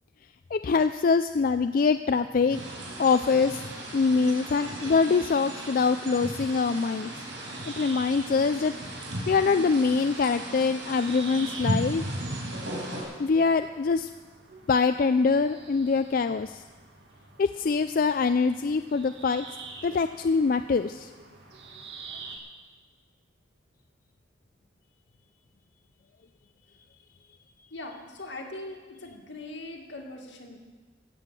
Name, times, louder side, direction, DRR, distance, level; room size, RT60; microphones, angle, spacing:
voice 1, 0.5-2.6 3.0-3.6 3.9-7.1 7.7-8.7 9.3-12.0 13.2-14.1 14.7-16.6 17.4-19.5 19.8-21.1, left 4 dB, 50° left, 10 dB, 0.4 m, -24 dB
sound 1, 2.5-13.0, right 1 dB, 90° right, 4.7 m, -36 dB
sound 2, 7.3-22.4, right 4 dB, 70° right, 2.1 m, -47 dB
voice 2, 27.7-30.6, left 2 dB, 80° left, 1 dB, 2.2 m, -41 dB
16.0 x 7.9 x 7.5 m, 1.4 s
head